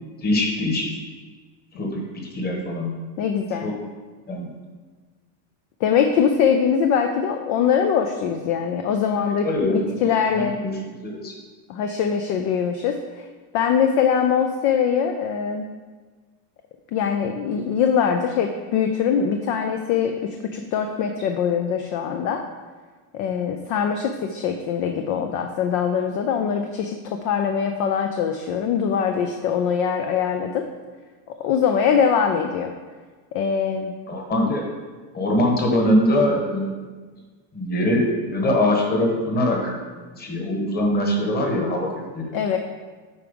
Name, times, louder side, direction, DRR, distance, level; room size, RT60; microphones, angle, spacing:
voice 1, 0.2-0.9 1.8-2.9 3.5-3.8 4.3-4.5 9.4-11.3 34.1-34.6 35.1-36.7 37.5-41.9 42.1-42.3, left 1 dB, 20° left, 1 dB, 1.3 m, -23 dB
voice 2, 3.2-3.7 5.8-10.6 11.7-13.2 13.5-15.7 16.9-22.4 23.1-30.6 31.4-32.7 33.3-33.9 34.4-34.5 42.3-42.6, left 7 dB, 40° left, 5 dB, 0.4 m, -22 dB
8.7 x 4.7 x 5.2 m, 1.4 s
supercardioid pair, 155°, 49 cm